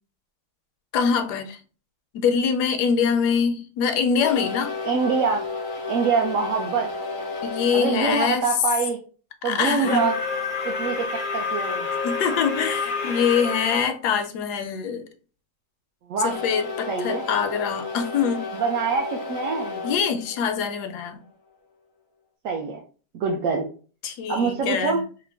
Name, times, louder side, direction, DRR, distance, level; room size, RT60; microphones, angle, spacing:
voice 1, 0.9-1.6 2.1-4.7 7.4-8.4 9.4-10.1 12.0-15.1 16.2-18.4 19.8-21.2 24.0-25.0, left 6 dB, 80° left, 1.1 m, -24 dB
sound 1, 4.2-8.0 9.7-13.9 16.2-21.0, left 4 dB, 50° left, 0.6 m, -31 dB
voice 2, 4.8-5.5 5.9-6.9 7.7-9.0 9.4-10.1 10.6-11.1 11.3-11.9 16.1-16.4 16.9-17.2 18.5-19.8 22.4-22.8 23.1-23.7 24.3-25.0, right 5 dB, 70° right, 0.9 m, -24 dB
3.7 x 2.1 x 3.3 m
omnidirectional pair, 1.7 m